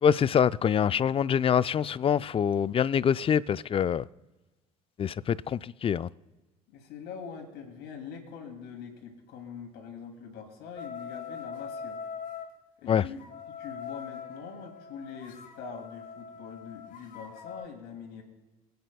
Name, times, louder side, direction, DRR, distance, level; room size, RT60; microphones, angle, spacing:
voice 1, 0.0-4.0 5.0-6.1 12.9-13.0, left 8 dB, 30° left, 0.4 m, -25 dB
voice 2, 6.7-12.0 12.8-13.2 13.6-18.2, left 6 dB, 65° left, 2.8 m, -43 dB
sound 1, 10.8-12.5 13.2-17.6, left 6 dB, 45° left, 1.7 m, -42 dB
27.5 x 9.5 x 2.3 m
hypercardioid pair, 65°, 19 cm